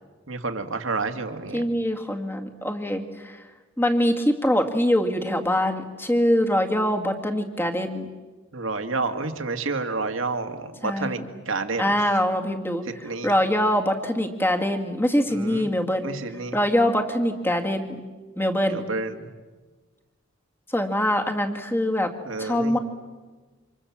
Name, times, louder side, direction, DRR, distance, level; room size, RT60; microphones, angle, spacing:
voice 1, 0.3-1.6 8.5-11.2 11.5-12.0 13.0-13.3 15.3-15.7 16.0-16.6 18.7-19.1 22.3-22.8, right 3 dB, 75° right, 6 dB, 2.1 m, -29 dB
voice 2, 1.5-3.4 3.8-8.1 10.8-11.2 11.8-16.1 16.5-18.0 18.4-18.8 20.7-22.1 22.4-22.8, equal, 10° left, 4 dB, 2.0 m, -23 dB
29.5 x 26.5 x 7.3 m, 1.3 s
head